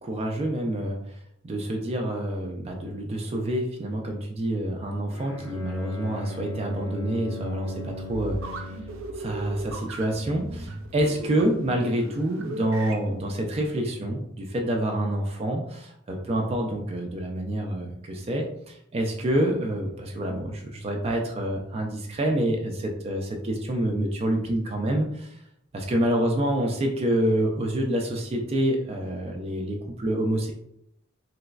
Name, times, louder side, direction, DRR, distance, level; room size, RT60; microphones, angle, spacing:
voice 1, 0.0-1.2 1.4-8.7 9.2-25.4 25.7-30.5, right 1 dB, 30° right, 2 dB, 0.3 m, -27 dB
Bowed string instrument, 5.1-9.1, left 1 dB, 90° left, 1.0 m, -38 dB
sound 1, 7.6-13.7, right 2 dB, 85° right, 0.5 m, -38 dB
3.2 x 3.0 x 2.3 m, 0.76 s
head